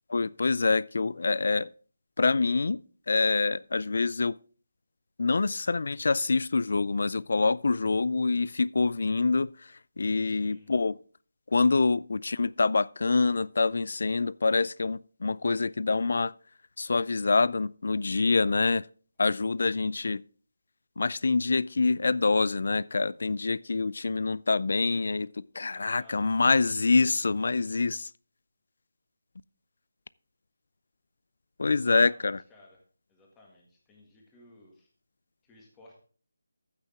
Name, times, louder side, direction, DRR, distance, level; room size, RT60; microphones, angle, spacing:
voice 1, 0.1-1.7 2.2-2.8 3.1-4.4 5.2-11.0 11.5-16.3 16.8-18.9 19.2-20.2 21.0-28.1 31.6-32.4, left 3 dB, 55° left, 0.4 m, -26 dB
voice 2, 10.2-10.7 25.7-26.8 31.6-32.8 33.1-34.9 35.4-36.0, left 2 dB, 10° left, 1.9 m, -57 dB
15.0 x 6.5 x 3.6 m
figure-of-eight pair, 170°, 0 cm